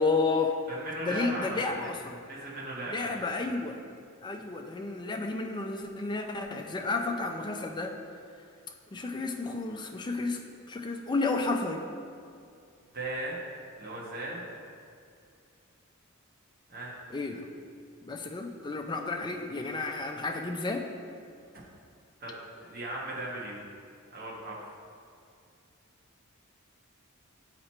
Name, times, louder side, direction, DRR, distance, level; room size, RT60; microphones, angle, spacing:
voice 1, 0.0-0.6 1.0-2.2 2.9-3.8 4.2-7.9 8.9-10.4 10.7-11.8 17.1-17.5 18.1-20.8, left 3 dB, 20° left, 3 dB, 0.4 m, -31 dB
voice 2, 0.7-1.9 2.2-3.3 12.9-13.4 13.7-14.4 16.7-16.9 21.5-21.6 22.2-23.6 24.1-24.6, right 1 dB, 45° right, -5 dB, 1.2 m, -37 dB
7.9 x 2.9 x 4.3 m, 2.4 s
head